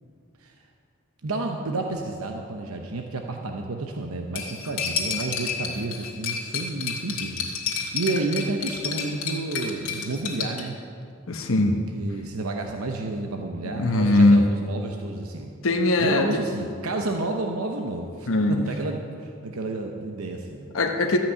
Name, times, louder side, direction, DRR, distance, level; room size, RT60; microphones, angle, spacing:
voice 1, 1.2-10.8 11.9-15.5 16.0-20.8, right 2 dB, 80° right, 3 dB, 0.8 m, -31 dB
Cutlery silverware, 4.3-10.6, left 6 dB, 85° left, 2.0 m, -30 dB
voice 2, 11.3-11.8 13.8-14.4 15.6-16.3 18.3-18.6 20.7-21.2, left 2 dB, 70° left, 3 dB, 1.1 m, -20 dB
13.5 x 6.0 x 8.6 m, 2.4 s
head